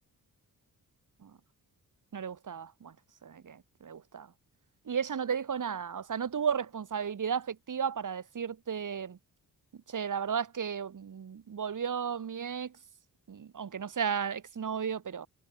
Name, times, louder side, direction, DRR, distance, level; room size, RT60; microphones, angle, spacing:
voice 1, 2.1-2.9 3.2-4.3 4.9-9.2 9.9-12.7 13.3-15.3, right 7 dB, 55° right, 4.4 m, -34 dB
cardioid pair, 110°, 37 cm